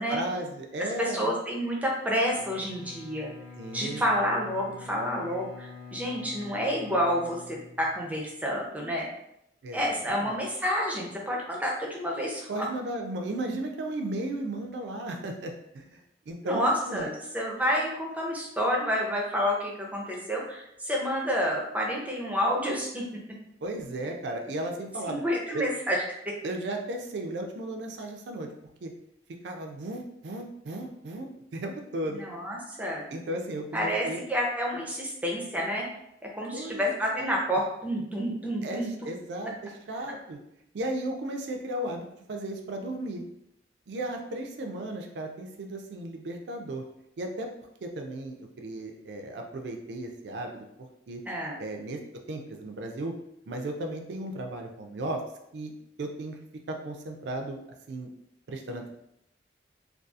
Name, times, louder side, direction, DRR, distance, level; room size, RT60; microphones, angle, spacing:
voice 1, 0.0-1.3 3.6-4.0 9.6-9.8 10.1-10.4 12.5-17.1 23.6-25.2 25.5-25.6 26.4-28.5 28.8-28.9 29.4-32.2 33.1-34.2 36.5-37.4 38.6-40.4 40.7-43.2 43.9-46.8 47.2-47.5 47.8-51.2 51.6-52.0 52.3-53.1 53.5-55.2 55.5-55.7 56.0-56.4 56.7-57.6 57.9-58.1 58.5-58.9, right 1 dB, 70° right, 3 dB, 0.4 m, -35 dB
voice 2, 1.0-3.3 3.7-9.1 9.7-12.7 16.4-23.0 25.1-26.3 32.1-33.0 33.7-35.9 36.2-38.9 51.3-51.6, equal, 10° right, -2 dB, 0.5 m, -29 dB
Bowed string instrument, 2.3-8.3, left 4 dB, 35° left, 0.7 m, -46 dB
2.6 x 2.3 x 2.3 m, 0.79 s
head